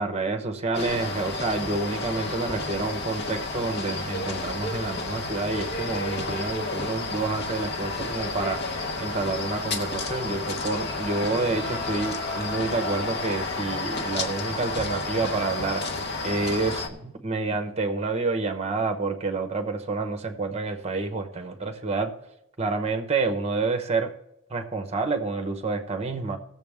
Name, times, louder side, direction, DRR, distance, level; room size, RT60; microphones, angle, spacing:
voice 1, 0.0-8.6 9.0-22.1 22.6-24.1 24.5-26.4, right 3 dB, 30° right, 6 dB, 0.9 m, -28 dB
sound 1, 0.7-16.9, left 3 dB, 50° left, 1.1 m, -31 dB
17.5 x 7.2 x 3.5 m, 0.83 s
head